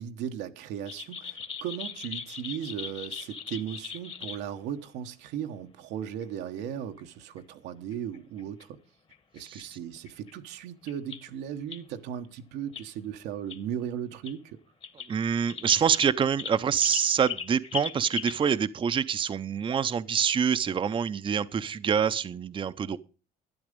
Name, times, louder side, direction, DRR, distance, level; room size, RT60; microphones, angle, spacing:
voice 1, 0.0-8.8 9.3-14.6, right 9 dB, 90° right, 1.2 m, -37 dB
sound 1, 0.9-4.4 5.6-5.7 6.2-6.3 6.6-6.7 7.0-7.1 7.4-7.5 7.9-8.6 9.1-9.6 10.0-10.3 10.9-11.3 11.7-11.8 12.7-12.9 13.5-13.6 14.1-14.4 14.8-15.1 15.5-18.4, left 6 dB, 35° left, 1.3 m, -38 dB
voice 2, 9.4-9.8 15.1-23.0, right 7 dB, 30° right, 0.6 m, -26 dB
12.0 x 10.0 x 5.2 m
cardioid pair, 110°, 17 cm